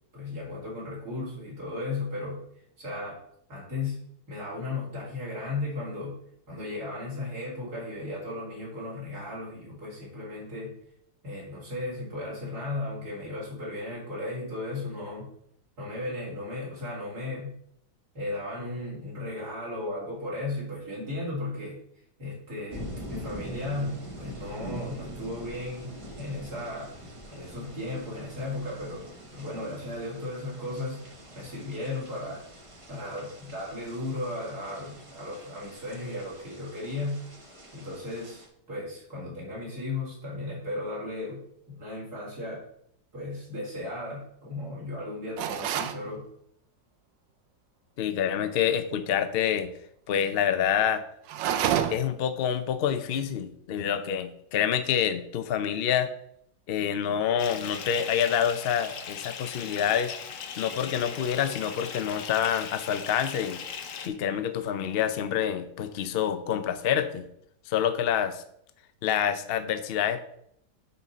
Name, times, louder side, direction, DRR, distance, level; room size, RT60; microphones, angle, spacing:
voice 1, 0.1-2.4 2.8-3.2 3.5-6.2 6.5-10.7 11.2-15.3 15.8-17.6 18.1-21.8 22.2-26.9 27.3-29.0 29.3-31.0 31.4-32.4 32.9-37.2 37.7-42.6 43.1-46.3, left 2 dB, 60° right, -6 dB, 2.9 m, -35 dB
sound 1, 22.7-38.5, equal, 20° right, 1.0 m, -44 dB
sound 2, 45.4-46.0 51.3-52.2, right 9 dB, 90° right, 1.3 m, -28 dB
voice 2, 48.0-49.7 50.1-51.0 51.9-56.1 56.7-60.1 60.6-63.6 64.1-67.3 67.7-68.4 69.0-70.2, left 9 dB, 80° left, 9 dB, 0.5 m, -27 dB
Bathtub (filling or washing) / Fill (with liquid), 57.4-64.1, left 7 dB, 60° left, 0.9 m, -39 dB
9.7 x 4.1 x 4.2 m, 0.71 s
omnidirectional pair, 1.9 m